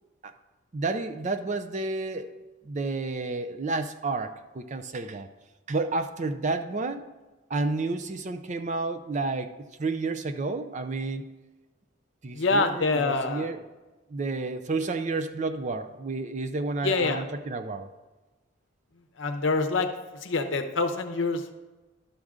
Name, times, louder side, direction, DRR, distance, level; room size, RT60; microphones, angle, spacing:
voice 1, 0.7-2.3 2.6-5.3 5.7-7.1 7.5-9.5 9.8-11.3 12.2-13.6 14.1-17.9, right 3 dB, 35° right, 9 dB, 0.4 m, -30 dB
voice 2, 12.3-13.5 16.8-17.2 19.2-19.9 20.2-21.6, left 3 dB, 65° left, 7 dB, 0.7 m, -26 dB
11.5 x 6.4 x 3.6 m, 1.2 s
head